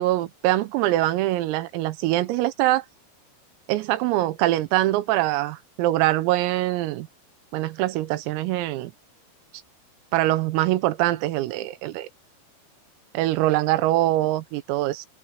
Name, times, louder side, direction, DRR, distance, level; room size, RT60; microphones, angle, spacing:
voice 1, 0.0-2.9 3.7-7.1 7.5-8.9 10.1-12.1 13.2-15.1, right 16 dB, 90° right, 3.8 m, -23 dB
open air
omnidirectional pair, 6.0 m